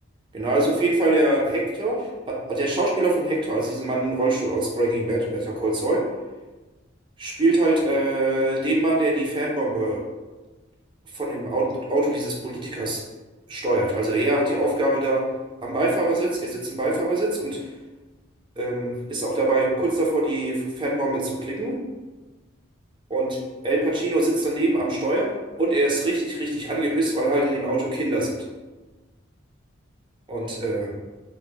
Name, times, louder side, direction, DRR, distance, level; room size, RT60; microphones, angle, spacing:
voice 1, 0.3-6.0 7.2-10.0 11.1-13.0 13.5-15.2 15.6-17.6 18.6-21.8 23.1-23.4 23.6-25.3 25.6-28.4 30.3-30.9, right 2 dB, 25° right, -2 dB, 0.5 m, -23 dB
2.2 x 2.0 x 3.1 m, 1.2 s
head